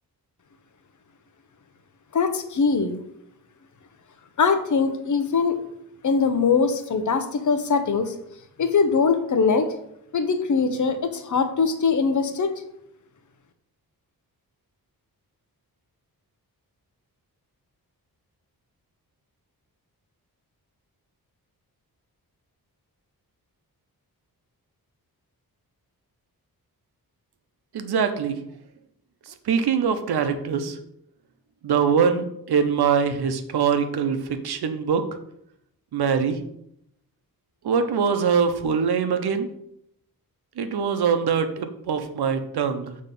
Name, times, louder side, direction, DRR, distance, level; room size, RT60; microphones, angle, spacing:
voice 1, 2.1-3.0 4.4-5.6 6.0-8.1 8.6-9.7 10.1-12.5, left 5 dB, 50° left, 8 dB, 0.8 m, -22 dB
voice 2, 27.7-28.4 29.3-30.8 31.6-35.0 35.9-36.4 37.6-39.5 40.6-43.0, right 6 dB, 90° right, 8 dB, 0.8 m, -23 dB
7.5 x 3.2 x 5.3 m, 0.76 s
wide cardioid pair, 140°, 37 cm